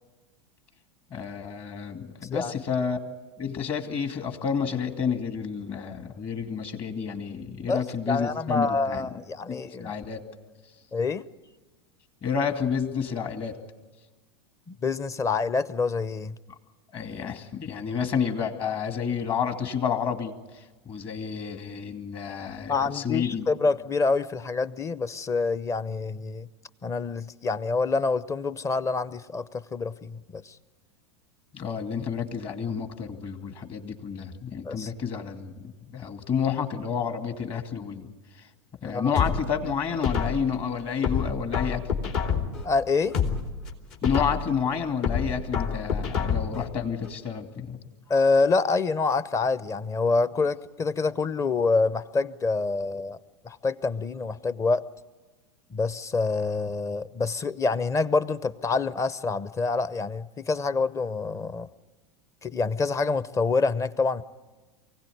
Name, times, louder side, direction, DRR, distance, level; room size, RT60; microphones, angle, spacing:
voice 1, 1.1-3.0 3.4-9.1 9.5-10.2 12.2-13.6 16.9-23.5 31.5-38.1 38.4-38.5 38.8-41.8 44.0-47.8, left 6 dB, 35° left, 6 dB, 2.4 m, -30 dB
voice 2, 7.7-9.9 10.9-11.2 14.7-16.3 22.7-26.5 26.8-30.5 34.6-34.9 38.8-39.1 42.6-43.1 48.1-53.2 53.4-54.8 55.7-61.7 62.4-64.2, left 4 dB, 20° left, 17 dB, 0.8 m, -26 dB
sound 1, 39.1-40.6 41.0-42.6 43.0-44.6 45.0-46.6 47.0-47.1, left 6 dB, 55° left, 3.0 m, -27 dB
24.0 x 16.5 x 9.3 m, 1.2 s
hypercardioid pair, 95°, 15 cm